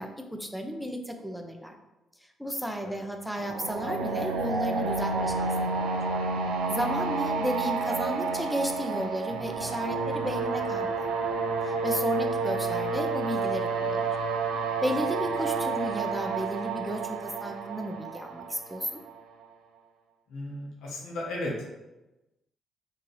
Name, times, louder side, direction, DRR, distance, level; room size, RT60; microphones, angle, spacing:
voice 1, 0.0-1.7 2.4-5.9 6.7-11.1 11.6-14.1 14.8-19.0, equal, ahead, 3 dB, 0.6 m, -33 dB
sound 1, 3.4-19.2, right 4 dB, 85° right, 0.5 m, -30 dB
voice 2, 20.3-21.8, left 1 dB, 80° left, -2 dB, 0.9 m, -35 dB
4.2 x 2.8 x 3.2 m, 1.0 s
supercardioid pair, 60°, 0 cm